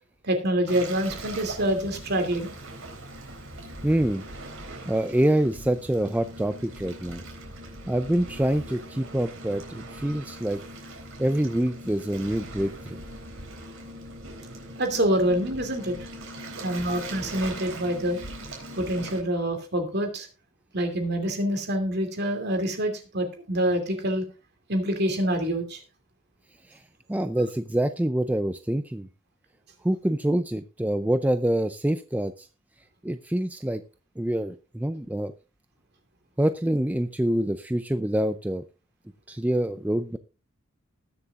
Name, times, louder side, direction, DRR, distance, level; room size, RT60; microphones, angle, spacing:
voice 1, 0.2-2.5 14.8-16.1 16.6-18.2 18.8-20.3 20.7-24.2 24.7-25.8, right 1 dB, 50° right, 5 dB, 2.7 m, -26 dB
Waves surf, 0.7-19.2, right 1 dB, 75° right, 3.7 m, -41 dB
voice 2, 3.8-4.2 4.9-7.2 7.9-10.6 11.2-13.0 26.7-26.8 27.1-29.1 29.8-32.5 33.0-33.8 34.2-35.3 36.4-38.6 39.3-40.2, right 1 dB, 10° right, 9 dB, 0.4 m, -26 dB
20.0 x 6.9 x 2.4 m, 0.33 s
head